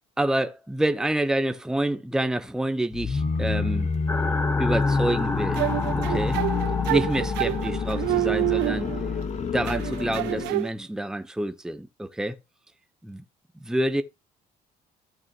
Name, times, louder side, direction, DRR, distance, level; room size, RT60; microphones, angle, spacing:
voice 1, 0.2-3.9 4.6-5.7 5.9-6.4 6.9-8.9 9.5-12.4 13.0-13.2 13.6-14.0, right 1 dB, 5° right, 0.8 m, -27 dB
sound 1, 2.9-10.6, left 5 dB, 45° left, 1.3 m, -28 dB
sound 2, 4.1-9.2, left 2 dB, 15° left, 1.6 m, -32 dB
sound 3, 5.6-9.2 9.7-10.7, right 20 dB, 85° right, 0.4 m, -28 dB
14.5 x 6.2 x 2.9 m
cardioid pair, 110°, 17 cm